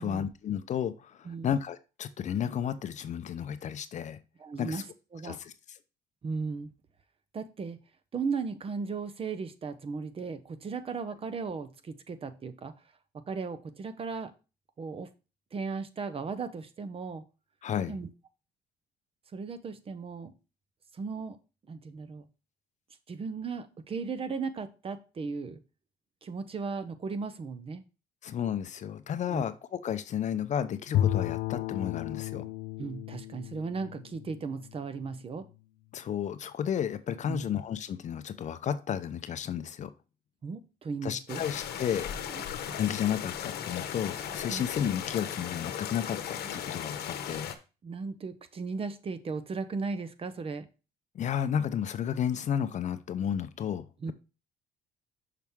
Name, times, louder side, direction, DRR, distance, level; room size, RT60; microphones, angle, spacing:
voice 1, 0.0-4.2 4.6-4.8 5.2-5.8 17.6-18.0 28.2-32.5 35.9-39.9 41.0-42.1 42.7-47.5 51.1-53.9, left 9 dB, 45° left, 0.6 m, -32 dB
voice 2, 4.4-4.9 5.1-5.4 6.2-6.7 7.3-7.8 8.1-12.7 13.1-14.3 14.8-15.1 15.5-17.2 17.9-18.1 19.3-20.3 20.9-21.4 21.7-22.3 23.1-25.6 26.2-27.8 29.3-29.4 32.8-35.5 37.3-37.5 40.4-41.4 42.4-42.5 44.5-44.6 47.8-50.7 54.0-54.1, right 4 dB, 35° right, 0.8 m, -36 dB
Bowed string instrument, 30.9-35.2, left 12 dB, 85° left, 0.6 m, -33 dB
sound 1, 41.3-47.6, left 9 dB, 70° left, 1.0 m, -37 dB
6.1 x 5.7 x 3.6 m
cardioid pair, 110°, 17 cm